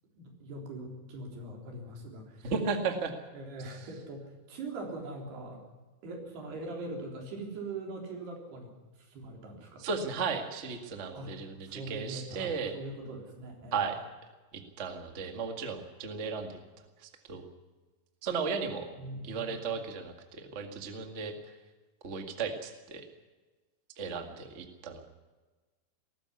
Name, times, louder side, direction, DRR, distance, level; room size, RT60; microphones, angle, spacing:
voice 1, 0.2-2.5 3.3-5.6 6.0-9.9 11.1-11.3 11.7-13.8 19.0-19.7, right 2 dB, 85° right, 1 dB, 5.7 m, -42 dB
voice 2, 2.4-3.1 9.8-12.7 13.7-14.0 14.5-16.6 17.0-17.5 18.2-18.9 19.2-21.3 22.0-23.1 24.0-25.1, right 5 dB, 35° right, 5 dB, 1.2 m, -35 dB
19.0 x 14.5 x 9.7 m, 1.3 s
omnidirectional pair, 4.5 m